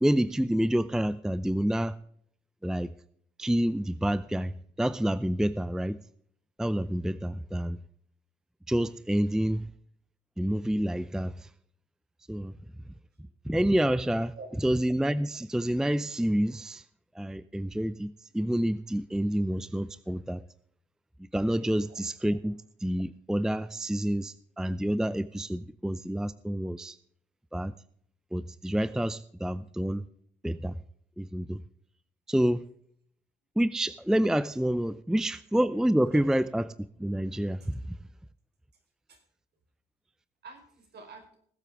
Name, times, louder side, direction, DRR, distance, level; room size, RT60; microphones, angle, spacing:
voice 1, 0.0-1.9 2.6-2.9 3.4-4.5 4.8-6.0 6.6-7.8 8.7-9.7 10.4-11.5 12.3-12.5 13.5-14.3 14.6-16.8 17.2-20.4 21.3-22.6 22.8-27.0 27.5-27.7 28.3-30.0 30.4-30.8 31.2-31.6 32.3-32.6 33.6-36.6 37.0-37.7, right 1 dB, 5° right, 15 dB, 0.5 m, -28 dB
voice 2, 40.4-41.4, right 4 dB, 55° right, 4 dB, 4.7 m, -48 dB
20.0 x 8.3 x 3.5 m, 0.64 s
cardioid pair, 90°, 20 cm